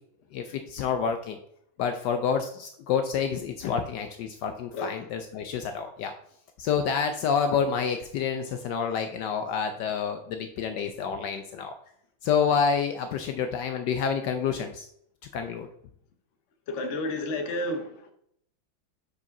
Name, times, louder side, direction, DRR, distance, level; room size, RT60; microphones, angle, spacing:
voice 1, 0.3-1.4 1.8-6.1 6.6-11.7 12.2-14.9 15.3-15.7, left 6 dB, 75° left, 7 dB, 1.2 m, -28 dB
voice 2, 16.7-18.1, left 1 dB, 50° left, 5 dB, 1.1 m, -31 dB
5.0 x 4.8 x 5.2 m, 0.69 s
omnidirectional pair, 2.1 m